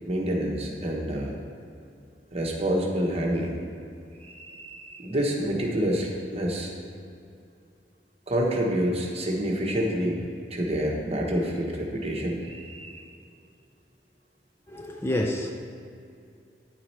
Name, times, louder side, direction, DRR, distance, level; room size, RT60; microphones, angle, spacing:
voice 1, 0.0-1.3 2.3-3.6 4.2-6.7 8.3-13.0, equal, 35° right, -1 dB, 1.1 m, -28 dB
voice 2, 14.7-15.5, left 1 dB, 15° left, 2 dB, 0.4 m, -28 dB
9.5 x 4.8 x 4.4 m, 2.5 s
head